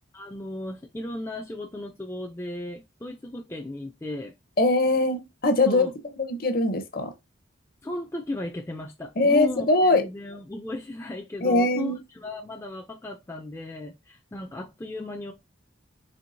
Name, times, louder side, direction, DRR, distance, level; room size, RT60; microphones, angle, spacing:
voice 1, 0.1-4.3 5.7-5.9 7.8-15.3, left 1 dB, 15° left, 0.4 m, -35 dB
voice 2, 4.6-7.1 9.2-10.1 11.4-12.0, left 2 dB, 45° left, 0.7 m, -22 dB
4.5 x 3.2 x 2.6 m
head